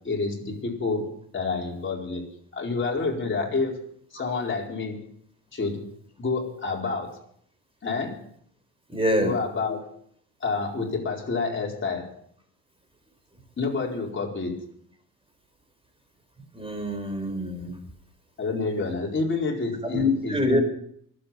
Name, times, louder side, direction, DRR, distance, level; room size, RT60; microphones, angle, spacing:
voice 1, 0.0-2.2 2.5-3.8 4.1-5.0 5.5-5.8 6.2-7.2 7.8-8.2 9.2-9.8 10.4-12.1 13.6-14.6 18.4-20.6, left 4 dB, 30° left, 0 dB, 4.6 m, -28 dB
voice 2, 8.9-9.3 16.5-17.8 19.9-20.6, left 1 dB, 15° right, 5 dB, 4.5 m, -25 dB
25.0 x 8.5 x 5.8 m, 0.65 s
supercardioid pair, 90°, 38 cm